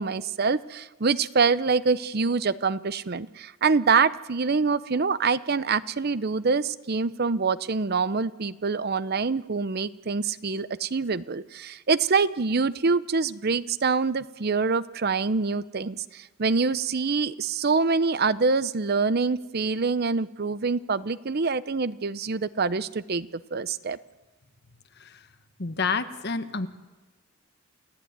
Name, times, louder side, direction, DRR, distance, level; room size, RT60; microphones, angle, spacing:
voice 1, 0.0-24.0, right 4 dB, 50° right, 16 dB, 0.7 m, -25 dB
voice 2, 25.0-25.3 25.6-26.7, left 4 dB, 55° left, 10 dB, 1.4 m, -29 dB
29.0 x 16.0 x 9.4 m, 1.2 s
head